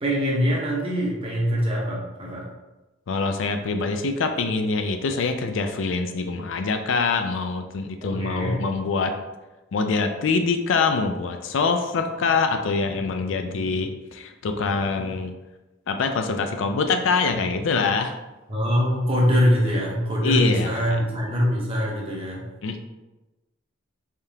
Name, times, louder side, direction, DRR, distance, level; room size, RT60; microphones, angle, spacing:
voice 1, 0.0-2.5 8.0-8.6 18.5-22.5, equal, 30° right, -3 dB, 0.9 m, -23 dB
voice 2, 3.1-9.1 9.7-15.3 15.9-18.1 20.2-21.0 22.6-22.8, left 4 dB, 70° left, 6 dB, 0.4 m, -24 dB
3.5 x 3.5 x 2.7 m, 1.1 s
head